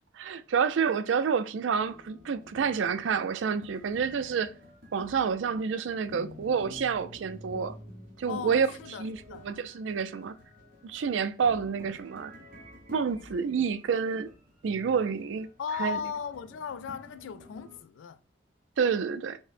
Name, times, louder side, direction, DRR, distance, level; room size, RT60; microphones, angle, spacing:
voice 1, 0.1-4.5 4.9-7.8 8.2-8.7 9.0-10.4 10.8-12.3 12.9-14.3 14.6-15.5 15.8-16.0 18.8-19.4, right 6 dB, 75° right, 0.4 m, -28 dB
sound 1, 1.8-17.8, left 1 dB, 45° right, 1.0 m, -50 dB
voice 2, 8.3-9.5 15.6-18.2, left 7 dB, 80° left, 0.3 m, -37 dB
5.3 x 2.1 x 2.4 m
head